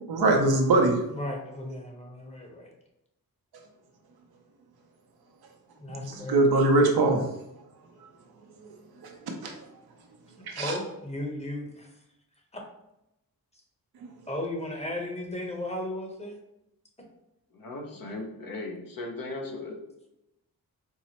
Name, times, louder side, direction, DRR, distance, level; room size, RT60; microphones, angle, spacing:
voice 1, 0.1-1.0 5.9-7.2 8.6-8.7 9.0-9.5 10.5-10.7, right 2 dB, 85° right, 2 dB, 0.7 m, -23 dB
voice 2, 1.1-2.7 5.8-6.5 10.6-11.9 14.3-16.4, left 1 dB, 15° left, 0 dB, 0.9 m, -35 dB
voice 3, 17.5-19.8, left 2 dB, 65° left, 1 dB, 0.9 m, -37 dB
4.5 x 2.1 x 2.9 m, 0.88 s
cardioid pair, 60°, 37 cm